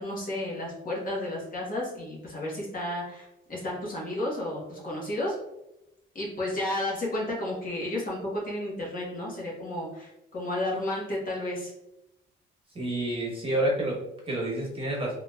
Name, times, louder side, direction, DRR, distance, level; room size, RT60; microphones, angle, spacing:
voice 1, 0.0-5.3 6.1-11.7, left 1 dB, 45° left, -4 dB, 1.3 m, -32 dB
voice 2, 12.7-15.1, right 1 dB, 25° right, -3 dB, 1.1 m, -29 dB
3.6 x 2.8 x 2.3 m, 0.88 s
cardioid pair, 90°, 20 cm